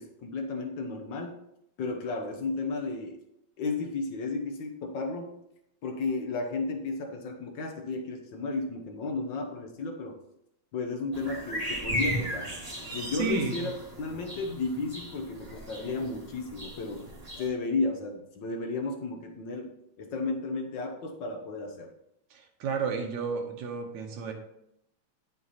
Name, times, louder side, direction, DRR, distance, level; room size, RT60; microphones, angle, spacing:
voice 1, 0.0-1.4 1.8-3.2 3.6-5.4 5.8-10.2 10.7-12.5 12.9-13.7 14.0-17.0 17.4-19.7 20.0-21.9, left 3 dB, 65° left, 3 dB, 1.1 m, -33 dB
sound 1, 11.1-17.5, equal, 20° right, 1.0 m, -36 dB
voice 2, 13.1-13.7 22.3-24.3, right 5 dB, 75° right, 2 dB, 2.6 m, -32 dB
10.0 x 6.3 x 4.1 m, 0.79 s
omnidirectional pair, 3.3 m